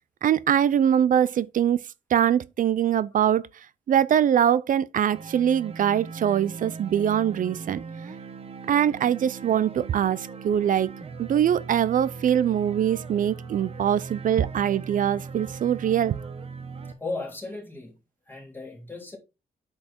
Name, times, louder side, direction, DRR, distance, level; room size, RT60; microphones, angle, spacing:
voice 1, 0.2-1.8 2.1-3.4 3.9-7.8 8.7-10.9 11.2-16.2, right 9 dB, 60° right, 0.5 m, -23 dB
sound 1, 5.1-16.9, right 5 dB, 40° right, 1.1 m, -39 dB
voice 2, 17.0-18.0 18.3-19.2, left 3 dB, 15° left, 3.0 m, -36 dB
8.5 x 4.8 x 4.3 m
wide cardioid pair, 155°, 16 cm